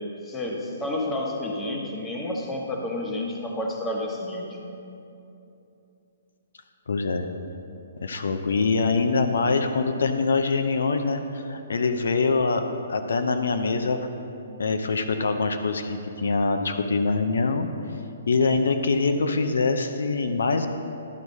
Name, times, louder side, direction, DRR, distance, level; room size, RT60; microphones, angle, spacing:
voice 1, 0.2-4.4, left 1 dB, 15° left, -1 dB, 1.0 m, -30 dB
voice 2, 6.9-7.3 8.0-12.6 12.9-14.0 14.6-17.7 18.3-20.7, left 4 dB, 85° left, 7 dB, 0.6 m, -24 dB
12.0 x 4.7 x 5.3 m, 2.8 s
hypercardioid pair, 155°, 0 cm